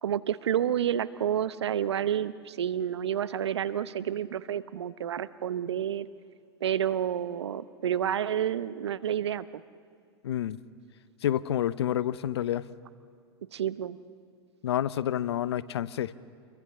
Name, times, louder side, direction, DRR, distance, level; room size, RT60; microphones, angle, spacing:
voice 1, 0.0-6.1 6.6-9.4 13.5-14.0, right 10 dB, 80° right, 16 dB, 0.8 m, -29 dB
voice 2, 10.2-10.6 11.2-12.7 14.6-16.1, left 11 dB, 75° left, 18 dB, 0.7 m, -29 dB
28.5 x 22.5 x 6.7 m, 2.2 s
hypercardioid pair, 95°, 14 cm